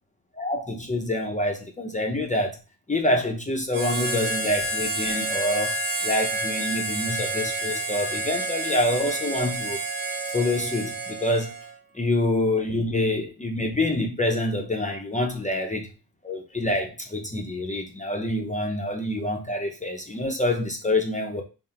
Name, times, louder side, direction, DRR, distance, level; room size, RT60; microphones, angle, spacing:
voice 1, 0.4-2.6 2.9-5.8 6.0-9.8 10.3-11.5 11.9-15.9 16.2-21.4, left 1 dB, 20° left, 2 dB, 0.6 m, -26 dB
Harmonica, 3.7-11.8, right 2 dB, 55° right, 1.1 m, -29 dB
3.8 x 2.1 x 4.2 m, 0.31 s
cardioid pair, 75°, 39 cm